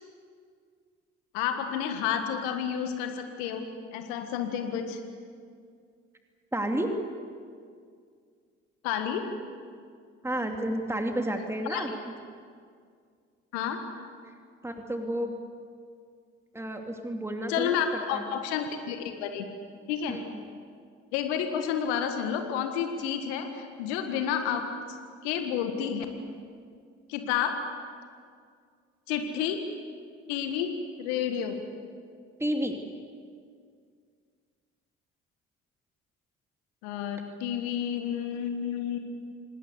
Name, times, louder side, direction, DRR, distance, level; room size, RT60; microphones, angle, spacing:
voice 1, 1.3-3.6 3.9-5.0 8.8-9.3 11.7-11.8 13.5-13.8 17.5-19.5 19.9-20.2 21.1-25.0 25.2-26.1 27.1-27.6 29.1-29.7 30.3-31.6 36.8-39.0, left 8 dB, 75° left, 6 dB, 1.7 m, -30 dB
voice 2, 6.5-6.9 10.2-12.1 14.6-15.4 16.5-17.8 18.1-18.2 20.1-20.4 32.4-32.8, right 1 dB, 10° right, 3 dB, 2.7 m, -31 dB
27.0 x 19.5 x 8.1 m, 2.1 s
figure-of-eight pair, 45°, 33 cm